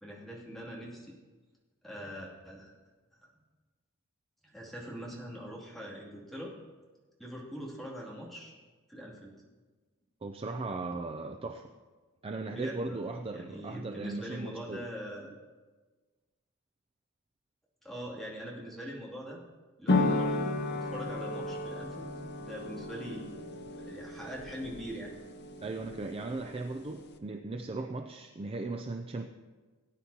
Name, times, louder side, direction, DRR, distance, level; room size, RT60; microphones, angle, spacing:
voice 1, 0.0-1.2 1.8-2.7 4.5-6.5 7.2-8.5 8.9-9.3 12.4-13.0 13.3-15.4 17.8-19.4 19.8-22.1 22.4-23.3 23.7-25.1, equal, ahead, -6 dB, 2.7 m, -42 dB
voice 2, 10.2-11.7 12.2-14.9 25.6-29.3, right 3 dB, 25° right, 5 dB, 0.4 m, -37 dB
sound 1, 19.9-27.2, left 2 dB, 50° left, 0.7 m, -34 dB
18.0 x 9.7 x 2.9 m, 1.3 s
head